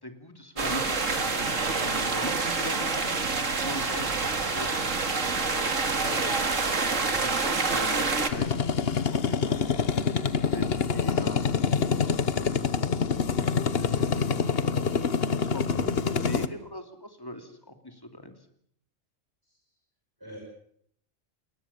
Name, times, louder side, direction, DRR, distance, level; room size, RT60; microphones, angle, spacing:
voice 1, 0.0-3.0 3.6-4.2 4.5-5.0 5.5-5.7 7.1-9.6 10.3-11.8 13.3-14.5 15.3-18.3, left 1 dB, 15° left, 7 dB, 2.9 m, -41 dB
sound 1, 0.6-8.3, right 4 dB, 70° right, 2.6 m, -27 dB
voice 2, 6.9-7.2 15.7-16.1 19.4-19.6 20.2-20.4, right 1 dB, 15° right, -1 dB, 6.4 m, -44 dB
sound 2, 8.3-16.5, left 6 dB, 50° left, 1.3 m, -26 dB
29.5 x 21.0 x 7.2 m, 0.68 s
omnidirectional pair, 1.4 m